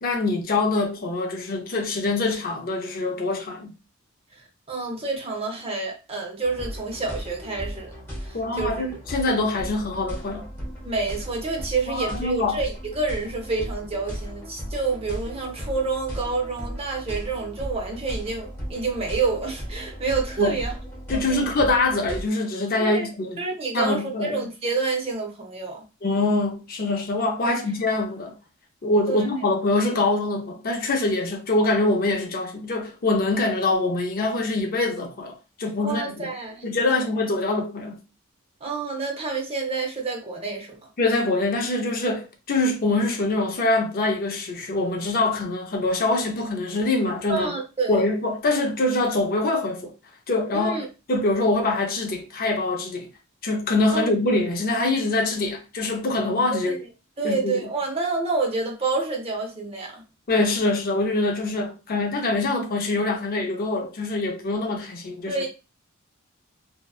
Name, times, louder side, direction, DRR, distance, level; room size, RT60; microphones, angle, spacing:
voice 1, 0.0-3.7 8.3-10.5 11.9-12.6 20.4-20.6 21.1-23.4 23.7-24.5 26.0-28.3 28.8-35.3 35.6-36.3 36.6-38.0 41.0-47.5 47.9-49.9 50.3-50.8 51.1-53.1 53.4-56.8 57.2-57.6 60.3-65.4, left 2 dB, 45° left, 0.5 m, -24 dB
voice 2, 4.7-7.9 8.2-9.0 10.8-20.7 21.1-21.4 22.8-23.1 23.4-25.8 27.5-27.6 29.1-29.3 35.8-37.0 38.6-40.9 47.3-48.0 50.5-50.9 53.9-54.1 56.5-56.8 57.2-60.0 65.3-65.5, right 4 dB, 30° right, 0.6 m, -28 dB
sound 1, 6.4-22.2, equal, 10° left, 0.8 m, -36 dB
2.6 x 2.2 x 2.3 m
head